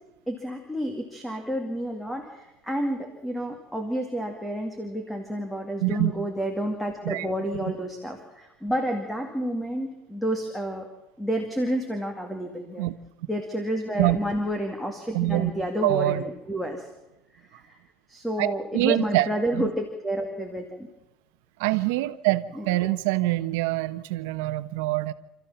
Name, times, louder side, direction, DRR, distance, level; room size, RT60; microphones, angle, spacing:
voice 1, 0.3-10.9 11.2-12.9 13.3-16.8 17.5-17.7 18.1-20.9 22.6-22.9, equal, 5° left, 4 dB, 2.2 m, -30 dB
voice 2, 5.8-6.1 7.0-7.3 12.8-12.9 14.0-14.2 15.1-15.5 15.8-16.2 18.4-19.3 19.5-19.7 21.6-25.1, right 18 dB, 85° right, 12 dB, 1.1 m, -25 dB
28.0 x 14.0 x 7.2 m, 1.0 s
cardioid pair, 155°, 0 cm